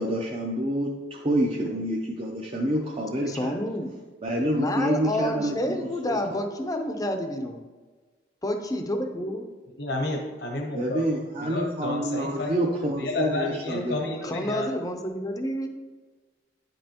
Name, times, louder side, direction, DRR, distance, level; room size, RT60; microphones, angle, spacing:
voice 1, 0.0-3.6 4.2-6.4 10.7-14.1, right 1 dB, 30° right, -1 dB, 0.5 m, -28 dB
voice 2, 3.3-3.9 4.5-7.6 8.4-9.5 14.2-15.7, left 1 dB, 20° left, 5 dB, 0.5 m, -29 dB
voice 3, 9.8-11.1 11.4-12.5 13.0-14.7, left 2 dB, 60° left, 0 dB, 0.9 m, -31 dB
9.6 x 5.3 x 2.9 m, 1.3 s
head